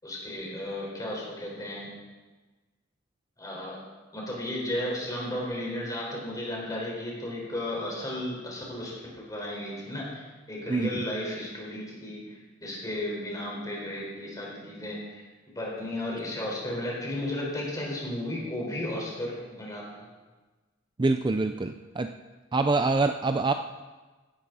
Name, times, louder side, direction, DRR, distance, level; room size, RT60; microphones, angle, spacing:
voice 1, 0.0-1.9 3.4-3.8 4.1-15.2 15.5-20.1, left 1 dB, 20° left, -3 dB, 4.6 m, -34 dB
voice 2, 21.0-22.1 22.5-23.5, right 3 dB, 25° right, 7 dB, 0.4 m, -25 dB
16.0 x 12.5 x 4.1 m, 1.3 s
head